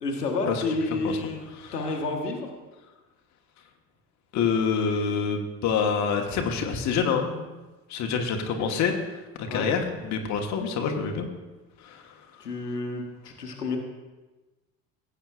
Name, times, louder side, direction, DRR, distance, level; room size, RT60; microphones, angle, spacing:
voice 1, 0.0-2.5 8.6-8.7 9.5-9.7 12.4-13.8, left 3 dB, 80° left, 2 dB, 1.2 m, -30 dB
voice 2, 4.3-7.5 7.9-11.3 11.8-12.1, left 6 dB, 35° left, 3 dB, 1.2 m, -27 dB
16.0 x 8.0 x 2.4 m, 1.2 s
figure-of-eight pair, 65°, 47 cm